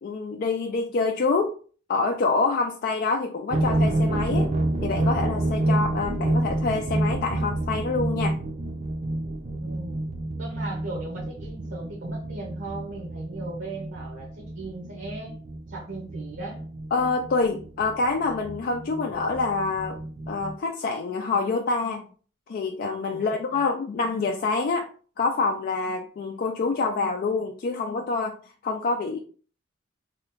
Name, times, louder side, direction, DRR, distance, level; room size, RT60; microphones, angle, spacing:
voice 1, 0.0-1.6 1.9-4.5 4.8-8.4 16.9-20.0 20.3-22.0 22.5-24.9 25.2-28.4 28.6-29.2, left 4 dB, 50° left, 2 dB, 0.3 m, -26 dB
sound 1, 3.5-20.5, right 1 dB, 35° right, 0.5 m, -28 dB
voice 2, 9.6-10.0 10.4-15.4 15.7-16.6 23.1-23.6, right 2 dB, 65° right, -1 dB, 0.8 m, -38 dB
2.9 x 2.3 x 3.5 m, 0.41 s
head